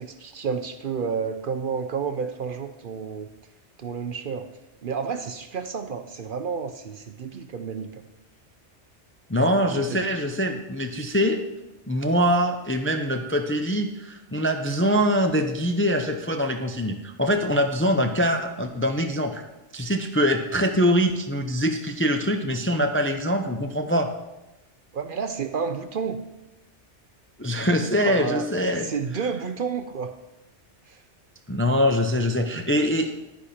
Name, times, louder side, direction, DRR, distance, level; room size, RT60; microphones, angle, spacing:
voice 1, 0.0-3.3 3.8-4.5 4.8-8.0 9.7-10.1 24.9-26.2 28.1-30.1 30.9-31.0, right 6 dB, 55° right, 8 dB, 0.7 m, -30 dB
voice 2, 9.3-11.4 11.9-19.4 19.7-24.1 27.4-28.9 31.5-33.1, equal, 15° left, 5 dB, 0.4 m, -23 dB
10.5 x 10.0 x 4.3 m, 0.98 s
omnidirectional pair, 1.2 m